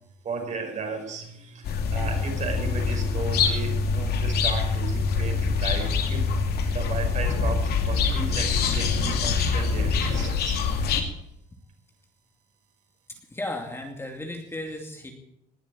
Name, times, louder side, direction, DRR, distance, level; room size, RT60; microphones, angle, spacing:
voice 1, 0.2-6.2 6.7-10.6, right 4 dB, 45° right, 3 dB, 5.3 m, -35 dB
sound 1, 1.6-11.0, left 5 dB, 70° left, 2.6 m, -25 dB
voice 2, 13.1-15.1, left 1 dB, 15° left, 3 dB, 2.6 m, -35 dB
20.0 x 7.3 x 8.7 m, 0.78 s
cardioid pair, 110°, 17 cm